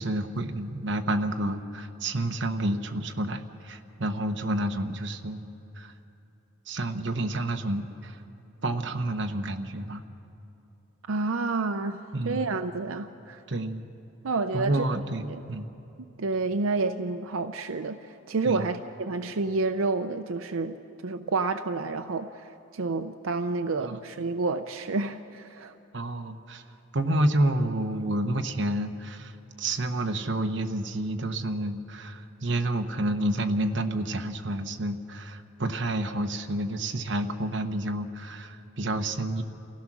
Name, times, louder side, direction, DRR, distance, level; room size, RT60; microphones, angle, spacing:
voice 1, 0.0-5.4 5.8-5.9 6.7-8.2 8.6-10.0 12.1-12.4 13.5-13.8 14.5-15.6 18.4-18.6 23.9-24.0 25.9-26.6 26.9-29.3 29.6-39.4, right 1 dB, 65° right, 6 dB, 1.1 m, -29 dB
voice 2, 11.1-12.0 12.2-13.4 14.2-14.8 15.3-15.4 16.2-20.8 21.0-25.7, right 3 dB, 90° right, 8 dB, 0.6 m, -29 dB
29.0 x 16.0 x 6.2 m, 2.8 s
head